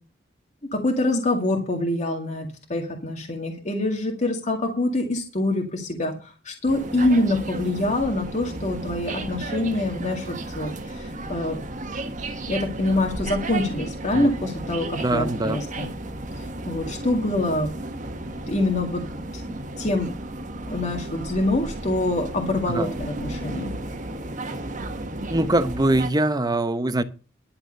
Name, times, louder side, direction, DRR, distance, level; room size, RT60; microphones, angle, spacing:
voice 1, 0.7-10.3 10.5-11.5 12.5-15.9 16.7-17.7 18.5-19.0 19.3-19.4 19.8-20.1 20.7-23.7, left 1 dB, 40° left, 2.0 m, -25 dB
sound 1, 6.7-26.1, right 2 dB, 45° right, 1.4 m, -33 dB
voice 2, 15.0-15.6 22.7-22.9 25.3-27.0, right 1 dB, 20° right, 0.9 m, -23 dB
11.5 x 6.6 x 6.7 m
head